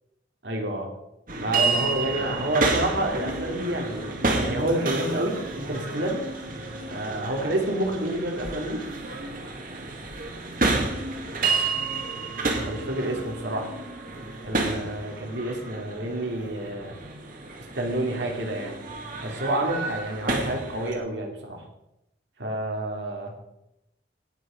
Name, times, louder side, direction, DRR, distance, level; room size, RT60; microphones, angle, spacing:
voice 1, 0.4-0.9 1.4-6.2 6.9-8.8 12.5-13.7 14.4-16.9 17.6-18.8 19.2-21.6 22.4-23.3, right 1 dB, 80° right, 1 dB, 3.0 m, -29 dB
sound 1, 1.3-21.0, right 3 dB, 50° right, 2.1 m, -30 dB
17.5 x 6.7 x 5.2 m, 0.85 s
head